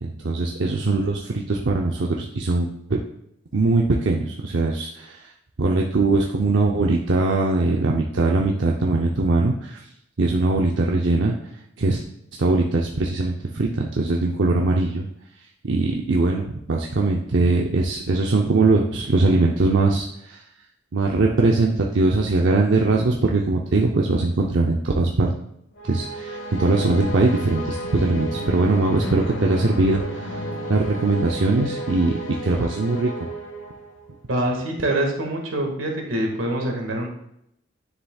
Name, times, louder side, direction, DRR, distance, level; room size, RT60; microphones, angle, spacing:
voice 1, 0.0-3.0 3.5-5.3 5.6-9.8 10.2-11.4 11.8-12.0 12.3-15.1 15.6-20.4 20.9-25.3 25.8-30.4 30.7-33.3, right 2 dB, 65° right, 0 dB, 0.6 m, -21 dB
sound 1, 25.8-34.2, equal, 75° left, 1.1 m, -32 dB
voice 2, 34.3-37.1, right 1 dB, 90° right, 1 dB, 1.8 m, -25 dB
9.7 x 6.8 x 2.3 m, 0.77 s
head